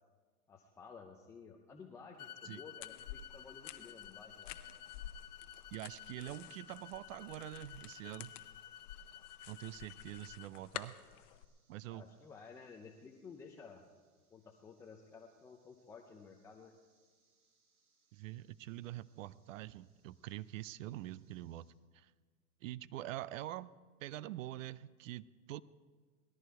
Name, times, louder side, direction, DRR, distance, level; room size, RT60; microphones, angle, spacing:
voice 1, 0.5-4.7 11.9-13.8 14.3-16.7, left 5 dB, 5° left, 1 dB, 0.4 m, -54 dB
sound 1, 2.2-10.5, left 10 dB, 75° left, 1.0 m, -53 dB
sound 2, 2.8-11.4, left 12 dB, 55° left, 0.9 m, -51 dB
sound 3, 3.0-21.7, right 4 dB, 80° right, 4.8 m, -79 dB
voice 2, 5.7-8.3 9.5-10.9 11.7-12.0 18.1-21.7 21.9-22.1 22.6-23.7 24.0-25.6, right 14 dB, 60° right, 19 dB, 0.6 m, -45 dB
18.5 x 13.5 x 4.6 m, 1.5 s
hypercardioid pair, 130°, 45 cm